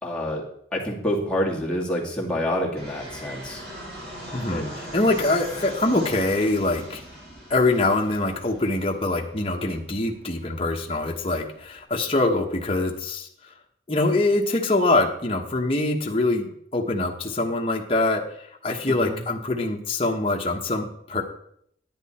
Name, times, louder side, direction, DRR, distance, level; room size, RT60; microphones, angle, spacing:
voice 1, 0.0-0.4 0.7-3.6 4.5-4.7 18.9-19.2, equal, 5° left, -4 dB, 2.2 m, -27 dB
Fixed-wing aircraft airplane, 2.8-11.8, right 1 dB, 65° right, 4.2 m, -41 dB
voice 2, 4.3-7.0 7.5-13.3 13.9-21.2, left 2 dB, 30° left, 0 dB, 1.1 m, -24 dB
10.5 x 9.4 x 4.3 m, 0.68 s
head